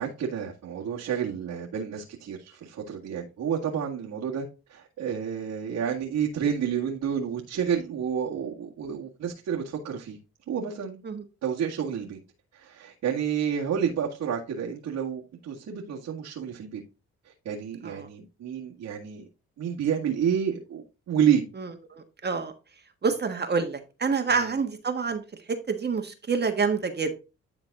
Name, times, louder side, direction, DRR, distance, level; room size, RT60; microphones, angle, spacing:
voice 1, 0.0-10.2 10.5-11.0 11.4-12.2 12.5-16.8 17.5-19.3 19.6-21.5 24.3-24.5, right 8 dB, 70° right, 2.0 m, -29 dB
voice 2, 21.6-22.5 23.0-25.2 25.7-27.2, right 5 dB, 35° right, 1.5 m, -27 dB
11.0 x 4.0 x 3.7 m
cardioid pair, 90°, 30 cm